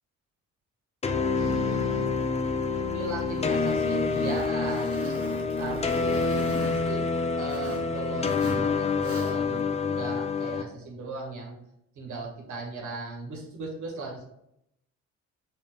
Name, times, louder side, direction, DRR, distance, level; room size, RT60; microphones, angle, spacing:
sound 1, 1.0-10.6, left 4 dB, 20° left, 0.5 m, -27 dB
voice 1, 1.3-2.1 2.7-4.9 5.6-7.1 7.4-11.6 12.0-14.2, right 3 dB, 70° right, -1 dB, 1.8 m, -37 dB
Zipper (clothing), 1.4-7.9 8.2-8.7 9.0-9.6, right 2 dB, 50° right, 1.3 m, -42 dB
5.3 x 4.0 x 2.3 m, 0.77 s
cardioid pair, 90°, 30 cm